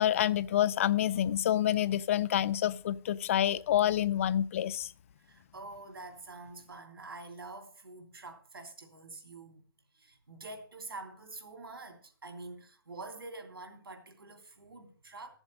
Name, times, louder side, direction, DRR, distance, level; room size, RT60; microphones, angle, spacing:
voice 1, 0.0-4.9, left 11 dB, 35° left, 0.4 m, -28 dB
voice 2, 5.2-9.7 9.9-15.4, right 3 dB, 80° right, 3.0 m, -46 dB
12.5 x 7.2 x 6.3 m
hypercardioid pair, 150°, 12 cm